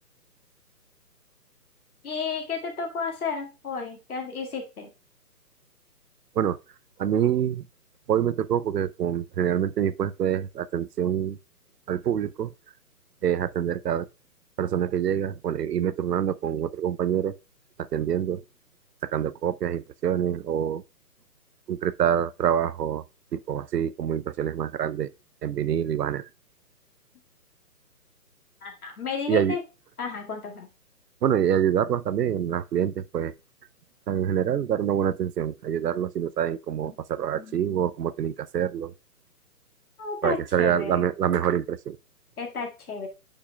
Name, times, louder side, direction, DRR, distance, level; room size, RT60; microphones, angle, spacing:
voice 1, 2.0-4.9 28.6-29.6 30.0-30.7 36.8-37.0 37.3-37.8 40.0-41.1 42.4-43.1, left 5 dB, 65° left, 2.0 m, -33 dB
voice 2, 7.0-7.6 8.1-11.4 11.9-12.5 13.2-14.1 14.6-17.3 17.8-18.4 19.0-20.8 21.7-23.0 23.3-25.1 25.4-26.3 29.3-29.6 31.2-33.3 34.1-38.9 40.2-42.0, right 9 dB, 80° right, 0.7 m, -26 dB
8.7 x 5.4 x 2.2 m
hypercardioid pair, 165°, 48 cm